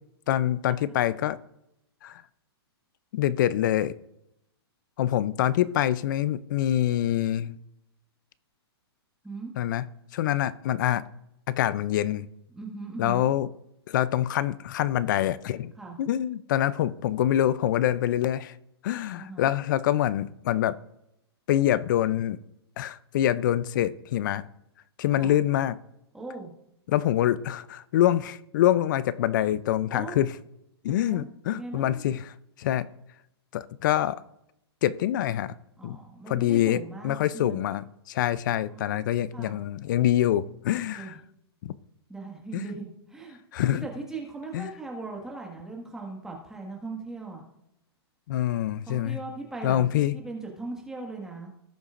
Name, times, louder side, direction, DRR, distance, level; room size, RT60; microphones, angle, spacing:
voice 1, 0.3-1.4 2.0-2.2 3.1-3.9 5.0-7.6 9.6-9.9 10.1-11.0 11.5-12.3 13.0-13.5 13.9-15.7 16.0-18.5 18.8-20.8 21.5-22.4 22.8-24.4 25.0-25.8 26.9-30.3 30.8-32.3 32.6-32.9 33.5-34.2 34.8-35.5 35.8-36.0 36.3-41.1 41.6-41.7 42.5-42.6 43.5-43.9 44.5-44.7 48.3-49.2 49.6-50.1, left 12 dB, 45° left, 17 dB, 0.5 m, -25 dB
voice 2, 12.5-13.3 15.7-16.0 19.1-19.5 25.2-25.3 26.1-26.5 29.9-30.2 30.9-32.1 35.8-37.6 38.7-39.6 40.9-41.2 42.1-43.4 43.7-47.4 48.9-51.5, right 3 dB, 5° right, -1 dB, 1.7 m, -39 dB
18.5 x 7.0 x 2.5 m, 0.82 s
hypercardioid pair, 155°, 14 cm